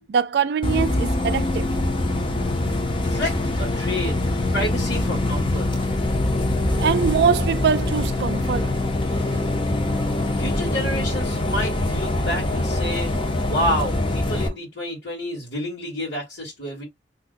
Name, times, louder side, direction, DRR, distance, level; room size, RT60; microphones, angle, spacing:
voice 1, 0.1-1.7 6.6-8.8, right 7 dB, 65° right, 0.3 m, -23 dB
Bus, 0.6-14.5, left 2 dB, 30° left, 0.5 m, -24 dB
voice 2, 3.0-5.7 10.4-13.1 13.4-16.8, left 1 dB, 80° left, 1.4 m, -29 dB
2.7 x 2.1 x 3.8 m
head